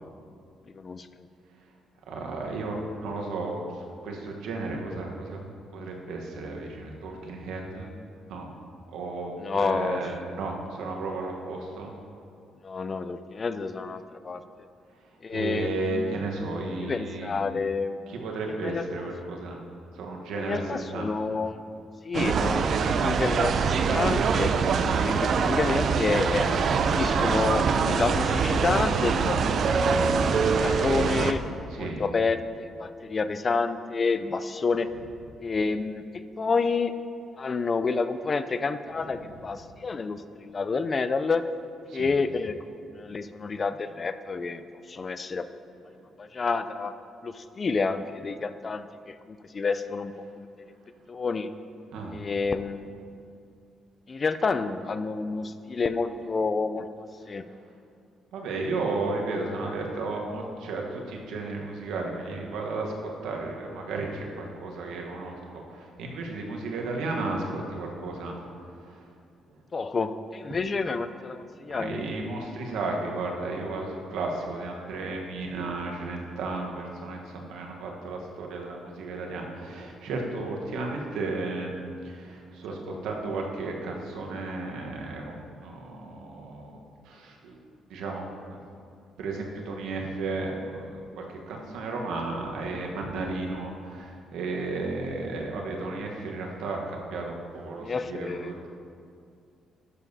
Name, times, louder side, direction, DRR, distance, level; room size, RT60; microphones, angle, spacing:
voice 1, 0.7-1.3 9.4-10.3 12.6-14.4 15.2-16.2 16.8-18.0 18.6-18.9 20.4-21.6 22.0-24.5 25.0-26.6 26.9-30.0 30.6-31.4 31.8-34.9 35.4-36.0 36.4-36.9 37.4-41.4 41.9-45.4 45.8-46.9 47.2-50.5 51.1-51.5 52.1-52.8 54.1-56.9 57.3-57.4 69.7-72.0 82.9-83.1 97.8-98.5, left 4 dB, 35° left, 11 dB, 0.4 m, -29 dB
voice 2, 2.1-5.4 5.7-7.9 8.3-8.5 8.9-11.9 15.3-17.3 18.1-19.6 19.9-21.0 31.7-32.0 39.0-39.1 41.9-42.1 51.9-52.2 58.3-68.4 68.6-69.1 70.5-70.6 71.7-81.7 82.0-86.8 87.0-87.6 87.9-88.6 89.2-98.7, right 3 dB, 90° right, 0 dB, 1.1 m, -34 dB
sound 1, 22.1-31.3, right 5 dB, 60° right, 0.4 m, -24 dB
11.5 x 7.0 x 2.7 m, 2.4 s
cardioid pair, 90°, 0 cm